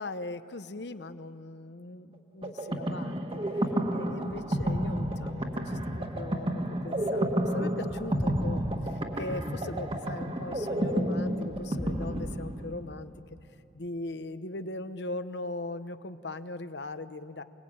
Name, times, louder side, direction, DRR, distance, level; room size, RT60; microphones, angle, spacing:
voice 1, 0.0-13.4 13.7-17.4, left 2 dB, 70° left, 11 dB, 1.0 m, -40 dB
sound 1, 2.4-13.0, equal, 30° right, 1.6 m, -31 dB
28.0 x 20.0 x 8.8 m, 2.8 s
head